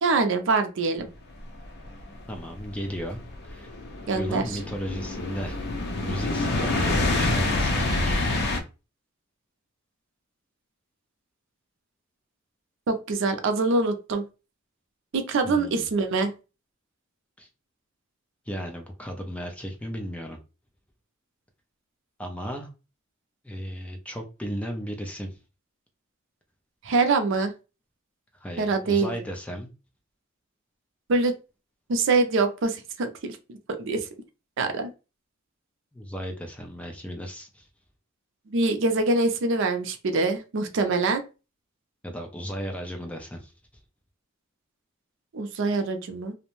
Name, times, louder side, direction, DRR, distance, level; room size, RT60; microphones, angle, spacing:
voice 1, 0.0-1.1 4.1-4.5 12.9-14.2 15.1-16.3 26.8-27.5 28.6-29.1 31.1-31.3 31.9-34.0 34.6-34.9 38.5-41.2 45.3-46.3, right 3 dB, 65° right, 7 dB, 0.5 m, -24 dB
sound 1, 1.6-8.6, left 2 dB, 55° left, 0.5 m, -27 dB
voice 2, 2.3-3.7 4.1-5.6 6.0-8.4 15.4-15.9 17.4-17.5 18.5-20.4 22.2-22.7 23.4-25.4 28.3-29.7 35.9-37.7 42.0-43.5, equal, 5° left, 2 dB, 0.4 m, -35 dB
2.5 x 2.1 x 2.9 m, 0.30 s
head